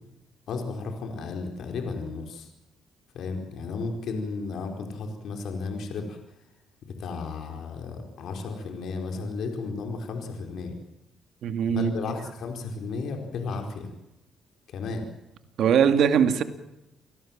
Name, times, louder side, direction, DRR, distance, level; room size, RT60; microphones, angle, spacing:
voice 1, 0.5-2.5 3.1-6.2 6.8-10.7 11.7-13.9 14.7-15.0, left 4 dB, 70° left, 4 dB, 4.8 m, -33 dB
voice 2, 11.4-11.9 15.6-16.4, right 8 dB, 70° right, 9 dB, 2.4 m, -21 dB
29.0 x 18.5 x 7.5 m, 0.92 s
cardioid pair, 90°, 0 cm